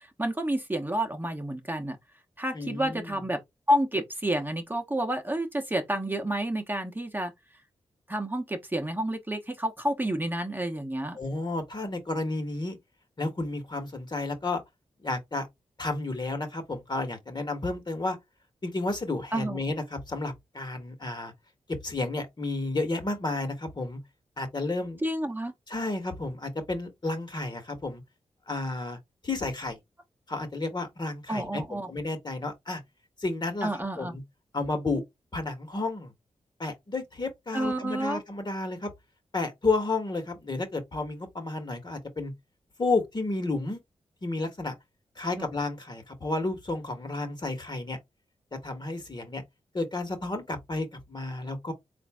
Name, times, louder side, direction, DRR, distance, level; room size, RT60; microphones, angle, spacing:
voice 1, 0.2-2.0 2.4-3.4 3.7-7.3 8.1-11.2 19.3-19.6 25.0-25.5 31.3-31.9 33.6-34.2 37.5-38.2 45.4-45.5, right 1 dB, 15° right, 1.0 m, -29 dB
voice 2, 2.5-3.2 11.1-12.8 13.2-14.6 15.0-15.5 15.8-18.2 18.6-21.3 21.7-24.0 24.4-25.0 25.7-28.0 28.5-29.0 29.2-29.8 30.3-32.8 33.2-33.7 34.0-34.2 34.5-35.0 35.3-36.1 36.6-38.9 39.3-42.3 42.8-43.8 44.2-44.7 45.2-48.0 48.5-49.4 49.7-51.7, left 2 dB, 40° left, 1.4 m, -31 dB
3.8 x 2.6 x 3.4 m
supercardioid pair, 40°, 12 cm